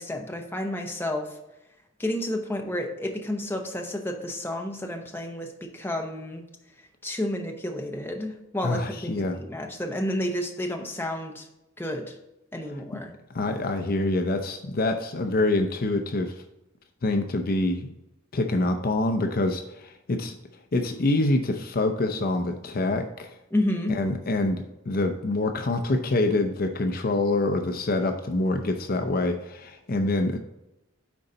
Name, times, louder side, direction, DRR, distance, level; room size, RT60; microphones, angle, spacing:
voice 1, 0.0-1.4 2.0-6.4 7.0-11.5 11.8-12.2 12.5-13.1 23.5-24.0, left 1 dB, 10° left, 3 dB, 0.8 m, -30 dB
voice 2, 8.6-9.4 13.3-16.3 17.0-17.9 18.3-20.3 20.7-23.4 23.9-30.4, left 2 dB, 45° left, 6 dB, 0.6 m, -26 dB
9.6 x 4.0 x 3.9 m, 0.91 s
head